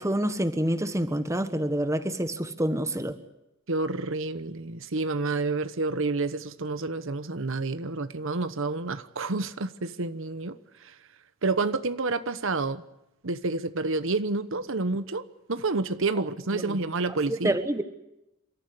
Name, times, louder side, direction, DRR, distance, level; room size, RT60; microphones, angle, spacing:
voice 1, 0.0-3.2 16.5-16.8 17.3-17.8, right 1 dB, 15° right, 10 dB, 1.3 m, -27 dB
voice 2, 3.7-10.9 11.4-12.8 13.2-15.2 15.5-17.6, right 3 dB, 60° right, 12 dB, 1.0 m, -29 dB
28.0 x 14.0 x 9.7 m, 0.91 s
head